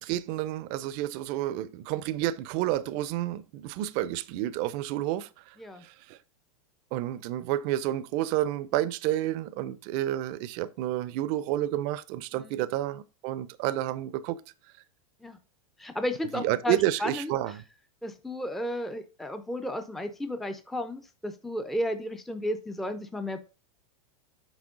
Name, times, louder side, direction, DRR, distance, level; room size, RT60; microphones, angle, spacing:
voice 1, 0.0-5.3 5.8-6.2 6.9-14.4 16.3-17.6, right 14 dB, 45° right, 0.5 m, -30 dB
voice 2, 15.8-17.3 18.0-23.4, left 1 dB, ahead, 0.5 m, -33 dB
6.2 x 4.3 x 3.7 m
hypercardioid pair, 115°, 19 cm